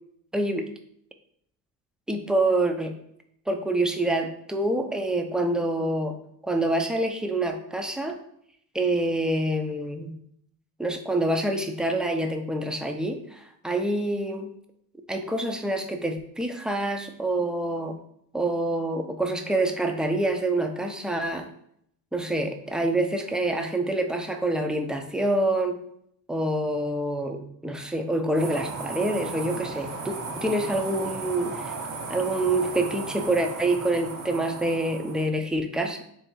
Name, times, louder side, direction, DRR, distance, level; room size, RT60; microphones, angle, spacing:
voice 1, 0.3-0.7 2.1-2.9 3.5-6.2 6.4-8.2 8.7-10.1 10.8-14.5 15.1-18.0 18.3-21.5 22.1-25.8 26.3-31.8 32.1-36.0, right 1 dB, ahead, 5 dB, 0.6 m, -26 dB
sound 1, 28.4-35.3, right 3 dB, 75° right, 1.2 m, -35 dB
3.5 x 3.4 x 4.4 m, 0.70 s
hypercardioid pair, 55°, 47 cm